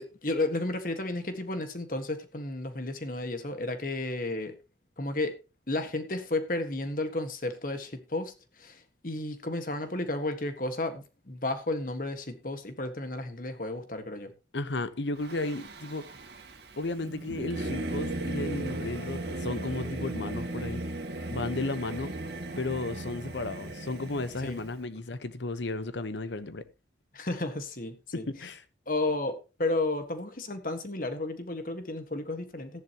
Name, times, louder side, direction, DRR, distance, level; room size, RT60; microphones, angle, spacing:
voice 1, 0.0-4.5 5.0-5.3 5.7-14.3 24.4-24.6 27.1-28.3 28.9-32.8, left 2 dB, 50° left, 1.6 m, -32 dB
voice 2, 14.5-16.0 16.8-20.8 21.3-22.1 22.6-26.6 28.1-28.6, left 2 dB, 80° left, 1.0 m, -34 dB
Singing / Musical instrument, 15.2-24.8, right 1 dB, 60° right, 2.0 m, -37 dB
14.5 x 10.5 x 2.9 m
head